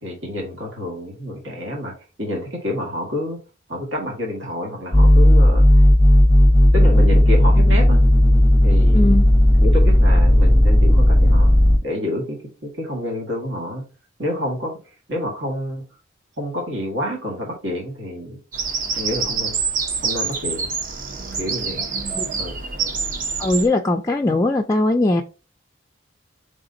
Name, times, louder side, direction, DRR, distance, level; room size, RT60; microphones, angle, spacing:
voice 1, 0.0-3.4 3.7-5.6 6.7-8.0 8.6-9.2 9.6-11.5 11.8-13.9 14.2-14.8 15.1-15.9 16.4-18.4 18.9-19.6 20.0-20.7 21.4-21.8 22.4-22.6, left 1 dB, 90° right, 1.5 m, -28 dB
sound 1, 4.9-11.8, left 1 dB, 20° right, 1.1 m, -13 dB
voice 2, 8.9-9.2 22.2-22.3 23.4-25.2, left 2 dB, 15° left, 0.3 m, -19 dB
Bird vocalization bird call bird song, 18.5-23.7, right 5 dB, 45° right, 0.8 m, -26 dB
4.9 x 3.6 x 2.6 m
head